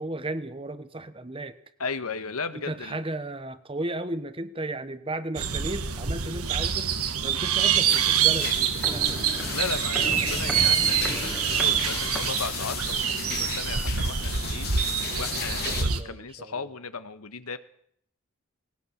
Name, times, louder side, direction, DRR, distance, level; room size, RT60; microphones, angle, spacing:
voice 1, 0.0-1.6 2.5-9.2 13.1-13.5 15.6-16.5, right 2 dB, 25° right, 12 dB, 1.0 m, -35 dB
voice 2, 1.8-3.0 9.5-14.7 15.1-17.6, left 4 dB, 80° left, 11 dB, 1.4 m, -36 dB
sound 1, 5.3-16.0, right 8 dB, 80° right, 1.6 m, -26 dB
sound 2, 7.9-15.8, left 8 dB, 45° left, 2.3 m, -35 dB
Walk footsteps, 8.7-12.9 13.2-13.3, equal, ahead, 2.0 m, -37 dB
20.0 x 19.0 x 7.3 m, 0.67 s
head